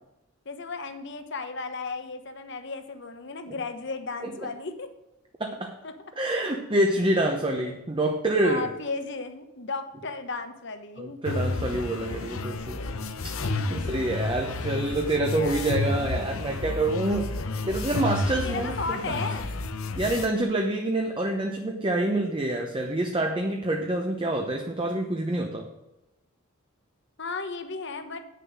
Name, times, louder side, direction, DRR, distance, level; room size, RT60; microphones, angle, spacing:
voice 1, 0.4-4.9 5.8-6.1 8.4-11.6 13.6-14.1 15.2-15.8 18.4-19.6 27.2-28.2, left 4 dB, 55° left, 8 dB, 1.1 m, -35 dB
voice 2, 5.4-5.7 6.2-8.7 11.0-12.9 13.7-17.3 17.7-19.2 20.0-25.7, right 1 dB, 25° right, 2 dB, 0.8 m, -27 dB
sound 1, 11.2-20.3, left 2 dB, 75° left, 0.8 m, -31 dB
9.2 x 6.8 x 6.3 m, 0.98 s
head